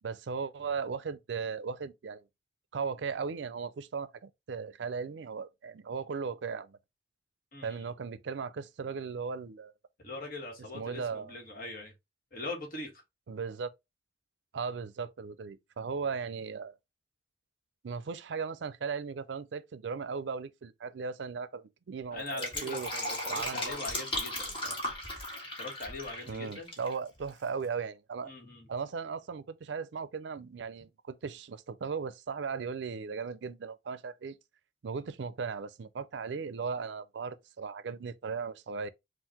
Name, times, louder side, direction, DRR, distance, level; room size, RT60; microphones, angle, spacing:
voice 1, 0.0-2.3 2.7-6.8 7.6-9.7 10.7-11.4 13.3-13.7 14.5-16.8 17.8-22.9 23.2-23.8 26.3-28.3 28.7-34.4 34.8-38.9, right 5 dB, 75° right, 0.4 m, -37 dB
voice 2, 7.5-7.9 10.0-11.9 12.3-12.9 22.1-24.8 25.6-26.7 28.2-28.7, left 2 dB, 50° left, 1.6 m, -41 dB
Fill (with liquid), 22.1-26.9 27.2-27.3, left 1 dB, 30° left, 1.6 m, -36 dB
5.6 x 2.5 x 2.8 m
head